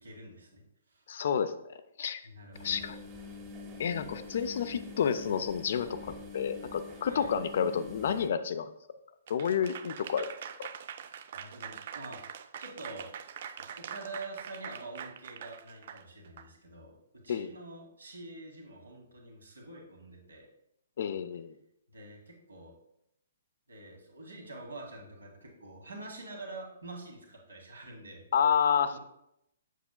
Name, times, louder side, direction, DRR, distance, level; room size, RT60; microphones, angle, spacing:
voice 1, 0.0-0.6 0.9-1.0 2.2-2.8 7.1-7.3 11.3-12.2 12.6-13.1 13.6-20.5 21.9-22.7 23.7-28.3 28.9-29.0, right 2 dB, 70° right, 1 dB, 1.8 m, -46 dB
voice 2, 1.1-2.2 2.6-3.0 3.8-8.7 9.3-10.3 10.6-10.7 17.3-17.5 21.0-21.5 28.3-29.0, left 7 dB, 50° left, 12 dB, 0.4 m, -30 dB
sound 1, 2.5-8.3, left 3 dB, 20° right, 1.1 m, -46 dB
Applause / Crowd, 9.3-16.5, right 8 dB, 45° right, 0.4 m, -44 dB
7.4 x 6.7 x 2.2 m, 0.80 s
figure-of-eight pair, 120°, 0 cm